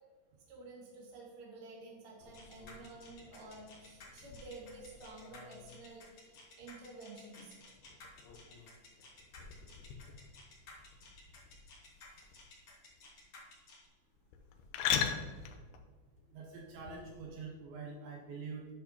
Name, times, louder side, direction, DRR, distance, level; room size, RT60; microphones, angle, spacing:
voice 1, 0.5-7.5, right 2 dB, 45° right, -4 dB, 2.8 m, -51 dB
sound 1, 2.2-17.3, left 8 dB, 85° left, 2.3 m, -43 dB
sound 2, 2.3-13.9, left 3 dB, 50° left, 2.0 m, -55 dB
voice 2, 16.3-18.7, right 4 dB, 75° right, -1 dB, 3.2 m, -45 dB
10.0 x 8.3 x 2.9 m, 1.5 s
omnidirectional pair, 5.5 m